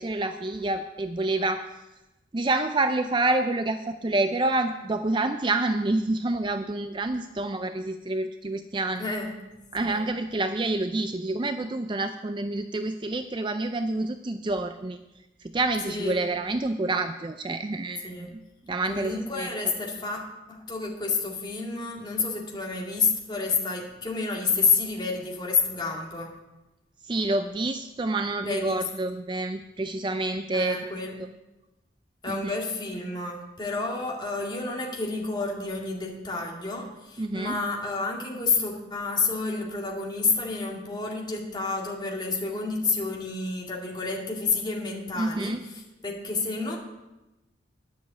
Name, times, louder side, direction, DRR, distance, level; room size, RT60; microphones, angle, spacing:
voice 1, 0.0-1.6 2.3-9.1 9.7-15.0 15.4-18.4 18.7-19.5 27.0-30.8 32.3-32.6 37.2-37.5 45.2-45.6, right 2 dB, 25° right, 8 dB, 0.4 m, -28 dB
voice 2, 9.0-9.3 9.8-10.0 15.9-16.2 18.0-18.3 18.9-20.2 20.5-26.3 28.4-28.9 30.5-31.2 32.2-46.8, left 4 dB, 25° left, -1 dB, 2.1 m, -29 dB
10.5 x 7.1 x 8.3 m, 1.0 s
head